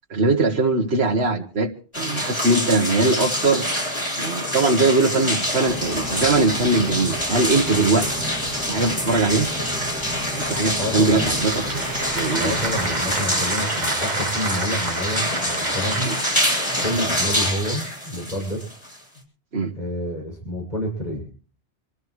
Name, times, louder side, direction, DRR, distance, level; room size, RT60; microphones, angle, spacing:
voice 1, 0.1-1.7 2.0-3.6 4.2-8.2 8.7-9.5 10.3-11.7 12.1-12.5 16.1-16.2 17.0-17.1 19.5-19.7, right 3 dB, 75° right, -1 dB, 1.8 m, -21 dB
sound 1, 1.9-19.2, left 1 dB, 25° left, 7.6 m, -26 dB
sound 2, 5.7-13.2, right 1 dB, 5° left, 3.7 m, -34 dB
voice 2, 10.8-11.3 12.4-16.1 16.8-18.6 19.8-21.3, equal, 40° left, -1 dB, 7.2 m, -28 dB
Applause / Crowd, 11.0-17.2, right 3 dB, 40° right, 1.6 m, -30 dB
27.5 x 14.0 x 3.2 m, 0.41 s
omnidirectional pair, 1.1 m